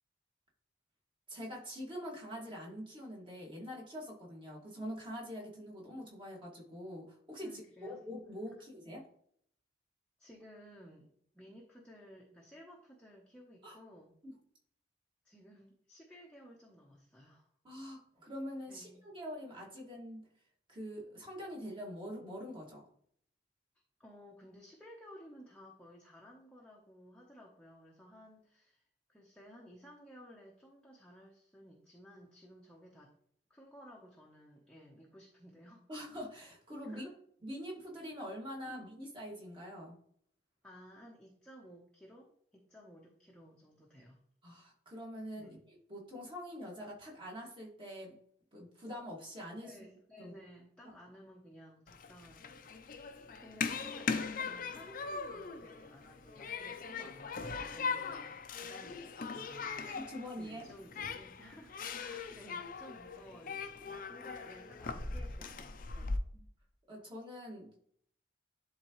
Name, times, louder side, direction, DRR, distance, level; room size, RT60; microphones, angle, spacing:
voice 1, 1.3-9.1 13.6-13.8 14.2-14.3 17.6-20.3 20.7-22.9 35.9-37.1 37.4-40.0 44.4-48.2 48.5-49.8 50.2-50.4 50.8-50.9 59.9-60.7 66.3-66.4 66.9-67.7, equal, 25° right, -3 dB, 2.1 m, -45 dB
voice 2, 7.4-8.0 8.5-8.6 10.2-11.1 11.3-14.1 15.2-17.5 18.7-19.0 24.0-33.1 33.5-35.8 36.9-37.2 38.6-38.9 40.6-44.2 45.4-45.6 49.6-66.2, equal, 5° left, -3 dB, 0.9 m, -56 dB
Human group actions, 51.9-66.2, left 5 dB, 50° left, 0.6 m, -40 dB
11.0 x 3.7 x 3.1 m, 0.64 s
head